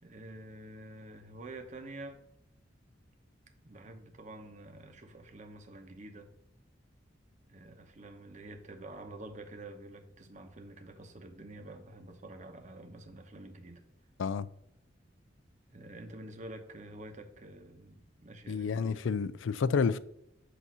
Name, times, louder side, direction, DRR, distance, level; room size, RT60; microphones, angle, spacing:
voice 1, 0.0-2.2 3.6-6.3 7.5-13.8 15.7-19.0, right 2 dB, 40° right, 0.9 m, -48 dB
voice 2, 18.5-20.0, left 5 dB, 80° left, 0.4 m, -30 dB
8.1 x 2.7 x 6.0 m
head